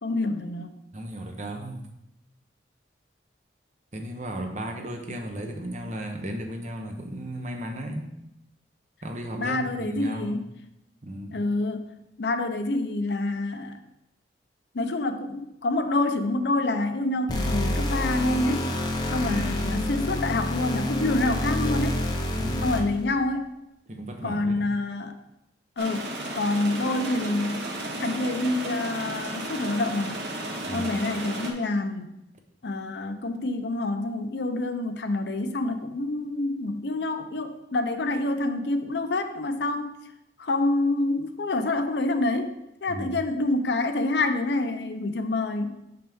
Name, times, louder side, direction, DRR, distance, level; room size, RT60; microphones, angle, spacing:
voice 1, 0.0-0.7 9.4-10.5 11.3-11.9 12.2-13.8 14.7-18.7 19.1-22.0 22.6-23.5 24.2-25.2 25.8-27.6 28.0-30.1 30.7-32.1 32.6-39.9 40.4-42.5 42.8-45.9, left 2 dB, 65° left, 8 dB, 0.6 m, -27 dB
voice 2, 0.9-1.8 3.9-8.1 9.0-10.4 11.0-11.4 19.3-19.6 22.3-22.6 23.9-24.7 30.6-31.0 42.9-43.1, right 1 dB, 40° right, 3 dB, 0.8 m, -35 dB
sound 1, 17.3-23.0, left 1 dB, 20° left, 0.8 m, -28 dB
sound 2, 25.8-31.5, right 1 dB, 70° right, 1.0 m, -33 dB
6.3 x 5.7 x 3.5 m, 0.84 s
head